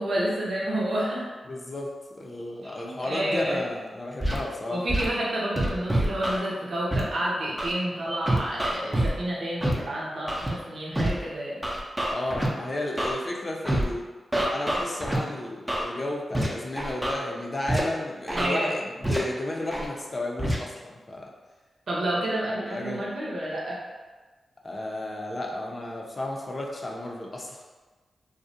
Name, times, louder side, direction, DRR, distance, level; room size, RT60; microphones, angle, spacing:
voice 1, 0.0-1.3 2.6-3.6 4.7-11.6 18.3-18.7 21.9-23.8, right 1 dB, 75° right, -5 dB, 0.7 m, -29 dB
voice 2, 1.5-1.9 2.2-4.8 12.1-14.1 14.5-21.3 22.5-23.0 24.6-27.6, left 1 dB, 40° left, -1 dB, 0.5 m, -33 dB
Scratching (performance technique), 4.2-4.4 4.9-5.1 5.6-6.4 6.9-7.0 7.6-7.7 8.3-9.1 9.6-9.7 10.3-10.5 11.0-11.1 11.6-12.5 13.0-13.1 13.7-13.8 14.3-15.2 15.7-15.8 16.3-16.5 16.8-17.1 17.7-17.8 18.3-18.5 19.0-19.2 19.7-19.9 20.4-20.6, right 1 dB, 15° right, 0.5 m, -25 dB
2.5 x 2.0 x 2.7 m, 1.3 s
cardioid pair, 45°, 0 cm